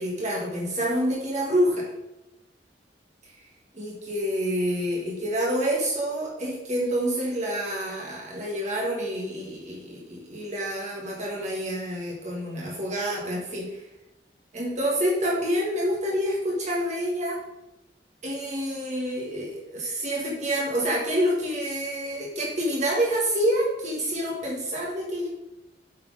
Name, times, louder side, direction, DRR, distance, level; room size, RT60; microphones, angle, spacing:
voice 1, 0.0-1.9 3.7-13.8 14.5-17.4 18.2-25.3, equal, 40° right, -3 dB, 1.5 m, -27 dB
8.1 x 4.1 x 4.7 m, 0.93 s
head